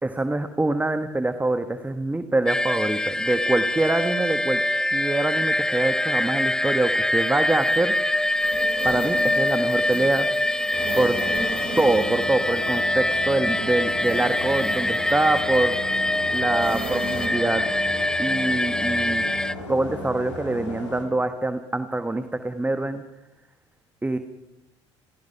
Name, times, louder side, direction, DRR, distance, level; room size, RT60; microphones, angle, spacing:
voice 1, 0.0-4.6 4.9-7.9 8.8-10.3 10.9-11.2 11.8-15.8 16.3-17.7 18.2-19.2 19.7-23.0 24.0-24.2, right 2 dB, 10° right, 9 dB, 1.3 m, -24 dB
sound 1, 2.5-19.5, left 1 dB, 5° left, 0.7 m, -24 dB
sound 2, 7.2-17.3, right 2 dB, 40° right, 4.5 m, -38 dB
sound 3, 10.7-21.0, left 2 dB, 85° left, 3.4 m, -36 dB
29.0 x 16.0 x 5.7 m, 0.96 s
figure-of-eight pair, 60°, 15 cm